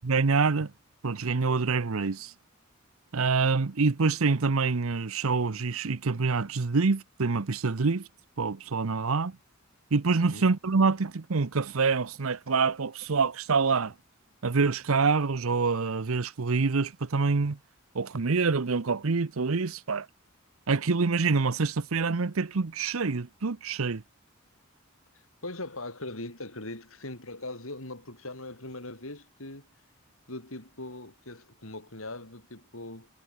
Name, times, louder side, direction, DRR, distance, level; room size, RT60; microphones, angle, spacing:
voice 1, 0.0-0.7 1.0-2.3 3.1-8.1 8.4-9.3 9.9-13.9 14.4-17.6 17.9-20.1 20.7-24.0, right 4 dB, 80° right, 0.8 m, -26 dB
voice 2, 25.4-29.7 30.3-33.1, left 2 dB, 80° left, 6.4 m, -40 dB
head